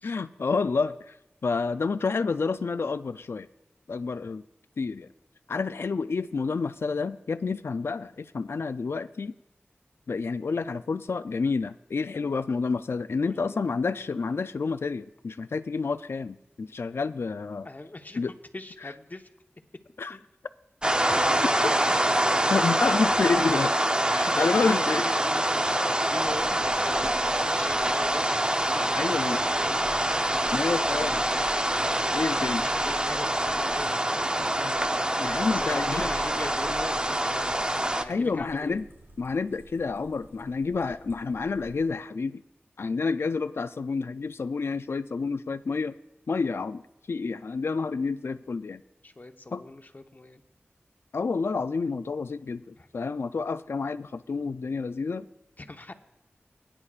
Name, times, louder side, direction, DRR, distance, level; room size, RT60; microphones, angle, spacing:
voice 1, 0.0-1.2 1.4-3.5 3.9-4.4 4.8-5.1 5.5-9.3 10.1-17.7 18.2-18.3 18.8-18.9 20.0-20.2 21.6-21.7 22.5-23.8 24.1-25.0 28.9-29.4 30.5-31.2 32.1-32.7 34.4-34.8 35.2-36.1 38.1-38.9 39.2-42.4 42.8-46.0 46.3-46.8 47.1-48.8 49.5-49.6 51.1-55.3, left 4 dB, 75° left, 11 dB, 0.3 m, -29 dB
voice 2, 13.2-13.6 17.6-18.2 18.5-19.3 20.1-20.2 20.9-21.7 24.0-28.4 28.7-29.8 31.9-34.3 35.4-38.8 49.0-50.4 52.8-52.9 55.6-55.9, left 2 dB, 45° left, 6 dB, 1.0 m, -41 dB
sound 1, 20.8-38.0, right 1 dB, 20° right, 0.7 m, -25 dB
sound 2, 26.1-41.9, right 2 dB, 75° right, 3.7 m, -49 dB
21.5 x 9.9 x 2.4 m, 0.89 s
cardioid pair, 40°, 4 cm